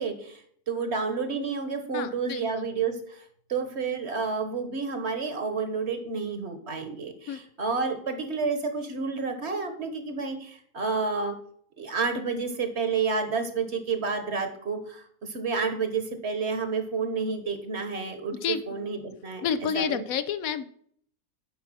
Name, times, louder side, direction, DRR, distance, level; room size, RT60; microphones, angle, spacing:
voice 1, 0.0-11.4 11.8-19.4 19.7-20.0, right 5 dB, 50° right, 8 dB, 1.4 m, -30 dB
voice 2, 1.9-2.7 7.3-7.4 18.4-18.6 19.4-20.7, left 7 dB, 75° left, 13 dB, 1.1 m, -29 dB
10.5 x 4.7 x 6.1 m, 0.63 s
omnidirectional pair, 1.5 m